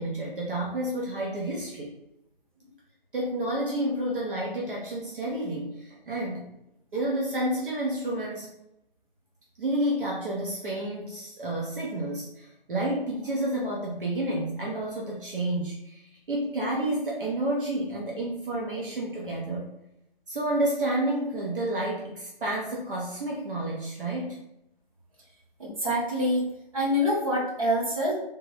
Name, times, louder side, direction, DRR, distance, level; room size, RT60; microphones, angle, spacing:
voice 1, 0.0-1.9 3.1-6.5 6.9-8.5 9.6-19.7 20.3-24.4, right 1 dB, 65° right, -3 dB, 0.7 m, -30 dB
voice 2, 25.6-26.5 26.7-28.1, equal, 35° right, -6 dB, 1.1 m, -25 dB
3.5 x 2.0 x 2.9 m, 0.85 s
hypercardioid pair, 180°, 29 cm